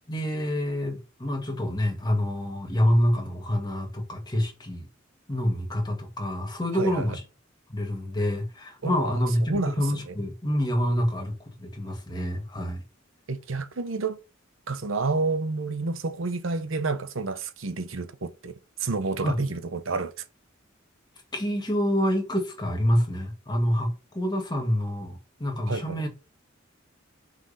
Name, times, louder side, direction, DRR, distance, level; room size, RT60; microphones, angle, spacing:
voice 1, 0.1-4.9 5.3-7.2 7.7-12.8 19.2-19.4 21.3-26.1, equal, 20° left, 1.9 m, -27 dB
voice 2, 6.7-7.1 8.8-9.1 9.5-10.1 13.3-14.2 14.7-18.5 18.8-20.1 25.7-26.0, right 3 dB, 75° right, 0.9 m, -29 dB
6.1 x 5.2 x 4.1 m
head